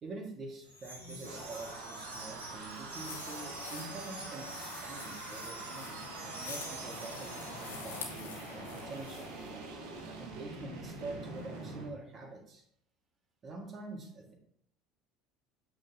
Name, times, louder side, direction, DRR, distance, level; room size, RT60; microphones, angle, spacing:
voice 1, 0.0-9.7 10.2-12.6 13.4-14.3, right 3 dB, 35° right, 2 dB, 1.8 m, -46 dB
Wind chime, 0.6-8.1, right 2 dB, 90° right, 1.5 m, -48 dB
sound 1, 0.7-11.9, right 3 dB, 65° right, 1.4 m, -45 dB
sound 2, 3.0-9.5, left 5 dB, 75° left, 1.2 m, -47 dB
8.6 x 6.3 x 2.8 m, 0.68 s
figure-of-eight pair, 65°, 0 cm